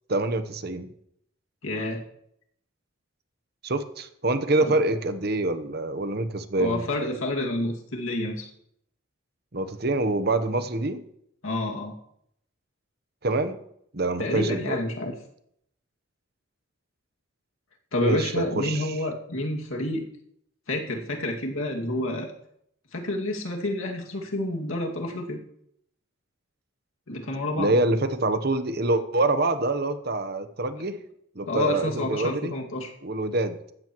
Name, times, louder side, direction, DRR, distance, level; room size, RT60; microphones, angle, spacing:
voice 1, 0.1-0.9 3.6-6.9 9.5-11.0 13.2-13.6 13.9-14.8 18.0-18.9 27.6-31.0 31.3-32.5 33.0-33.7, right 2 dB, 50° right, 10 dB, 0.9 m, -26 dB
voice 2, 1.6-2.0 4.6-4.7 6.6-8.5 11.4-12.0 14.2-15.1 17.9-20.1 20.7-22.3 22.9-25.4 27.1-27.7 31.4-32.9, left 1 dB, 80° left, 0 dB, 2.2 m, -29 dB
15.5 x 13.0 x 3.1 m, 0.73 s
head